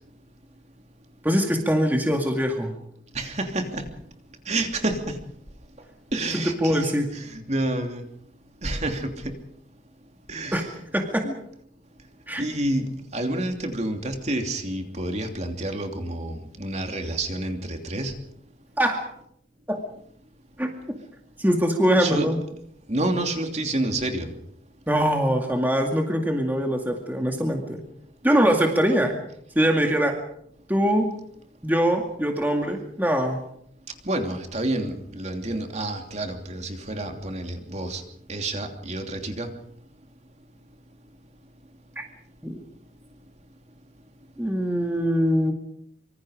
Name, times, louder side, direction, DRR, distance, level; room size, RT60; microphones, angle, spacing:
voice 1, 1.2-2.7 6.6-7.1 10.5-10.6 10.9-11.2 12.3-12.4 18.8-19.0 19.7-19.8 20.6-20.7 21.4-22.4 24.9-27.8 28.2-29.2 29.6-30.1 30.7-31.1 31.6-33.4 42.4-42.5 44.4-45.5, equal, 10° right, 2 dB, 2.2 m, -22 dB
voice 2, 3.1-3.8 4.5-5.0 6.1-8.0 8.6-9.2 10.3-10.7 11.2-11.3 12.4-12.9 13.1-18.1 22.0-22.3 22.9-24.3 34.1-38.0 38.3-39.5, right 1 dB, 35° right, 4 dB, 3.0 m, -29 dB
25.5 x 25.0 x 5.1 m, 0.70 s
head